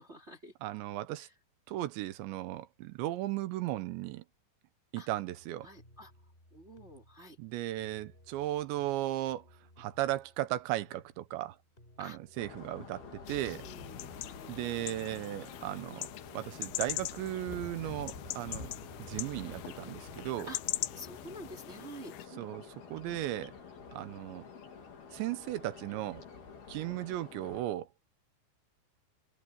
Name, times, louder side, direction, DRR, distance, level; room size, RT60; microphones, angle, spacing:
voice 1, 0.0-0.5 1.2-1.3 5.0-5.1 5.6-6.1 6.5-7.4 12.0-12.2 13.3-14.5 20.5-20.6 20.9-22.5, right 1 dB, 15° right, 2.8 m, -49 dB
voice 2, 0.6-1.3 1.7-4.2 4.9-5.7 7.4-9.5 9.8-11.6 12.0-13.6 14.5-16.1 16.3-18.7 19.0-20.5 22.4-23.5 23.9-24.4 25.1-26.2 26.7-27.9, right 15 dB, 80° right, 3.2 m, -36 dB
sound 1, 5.3-21.3, left 1 dB, 10° left, 7.2 m, -61 dB
sound 2, 12.4-27.6, left 5 dB, 60° left, 5.8 m, -48 dB
sound 3, 13.3-22.3, left 17 dB, 90° left, 3.1 m, -42 dB
omnidirectional pair, 5.2 m